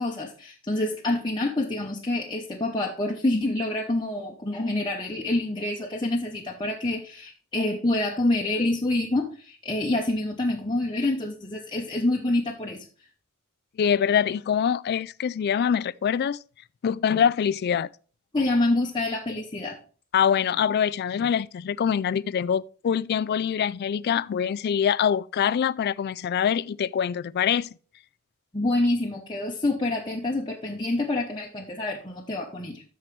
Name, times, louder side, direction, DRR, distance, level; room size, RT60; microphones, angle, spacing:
voice 1, 0.0-12.8 18.3-19.8 28.5-32.8, left 2 dB, 20° left, 0.9 m, -27 dB
voice 2, 13.8-16.4 16.8-17.9 20.1-27.7, left 8 dB, 45° left, 0.3 m, -24 dB
13.5 x 4.6 x 3.2 m
head